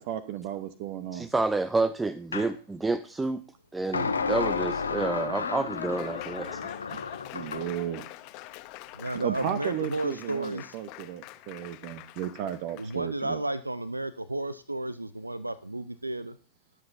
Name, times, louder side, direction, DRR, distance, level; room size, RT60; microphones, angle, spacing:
voice 1, 0.0-1.3 6.9-7.0 7.3-8.1 9.1-13.4, right 11 dB, 45° right, 13 dB, 0.9 m, -34 dB
voice 2, 1.1-3.4 3.7-6.6, right 3 dB, 10° right, 15 dB, 0.5 m, -29 dB
sound 1, 2.3-2.5 3.9-7.7, left 5 dB, 75° left, 0.9 m, -32 dB
Laughter / Applause, 5.1-13.0, left 17 dB, 45° left, 0.9 m, -44 dB
voice 3, 8.9-10.8 12.7-16.4, right 2 dB, 85° right, 17 dB, 0.5 m, -33 dB
21.5 x 7.8 x 2.7 m, 0.36 s
figure-of-eight pair, 90°, 0 cm